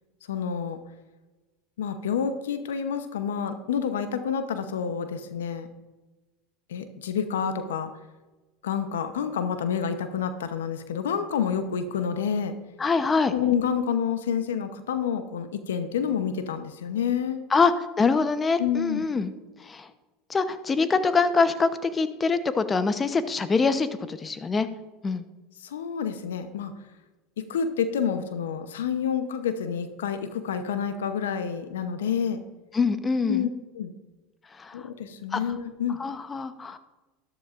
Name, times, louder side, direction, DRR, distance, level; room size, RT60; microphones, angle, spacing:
voice 1, 0.3-0.8 1.8-5.7 6.7-7.9 8.6-12.5 13.3-17.4 18.6-19.0 25.6-26.7 27.4-32.4 33.3-33.5 33.7-33.9 34.7-36.0, left 7 dB, 85° left, 10 dB, 0.8 m, -28 dB
voice 2, 12.8-13.3 17.5-19.3 19.6-19.9 20.3-24.7 25.0-25.2 32.7-33.5 34.5-34.9 35.3-35.4 36.0-36.8, left 4 dB, 25° left, 12 dB, 0.8 m, -24 dB
12.5 x 11.5 x 2.5 m, 1.2 s
hypercardioid pair, 90°, 0 cm